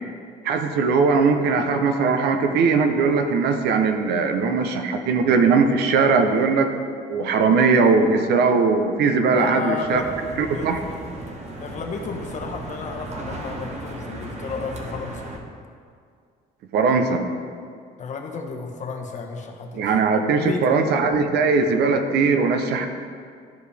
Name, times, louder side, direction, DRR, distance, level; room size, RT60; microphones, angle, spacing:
voice 1, 0.4-6.7 7.1-10.0 10.4-10.8 16.7-17.2 19.7-22.9, right 4 dB, 75° right, 6 dB, 0.8 m, -20 dB
voice 2, 9.3-10.1 10.5-10.7 11.6-15.3 18.0-19.9 20.4-20.7, left 5 dB, 45° left, 3 dB, 1.0 m, -32 dB
sound 1, 9.8-15.4, right 2 dB, 40° right, 1.1 m, -36 dB
13.0 x 4.8 x 3.4 m, 2.2 s
cardioid pair, 110°, 17 cm